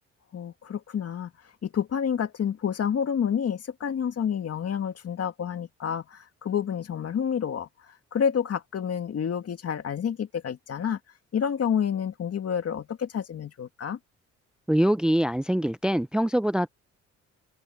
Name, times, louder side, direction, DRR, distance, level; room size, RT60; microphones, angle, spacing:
voice 1, 0.3-1.3 1.6-7.7 8.1-11.0 11.3-14.0, left 8 dB, 55° left, 2.2 m, -29 dB
voice 2, 14.7-16.7, equal, 5° right, 0.6 m, -24 dB
cardioid pair, 90°, 30 cm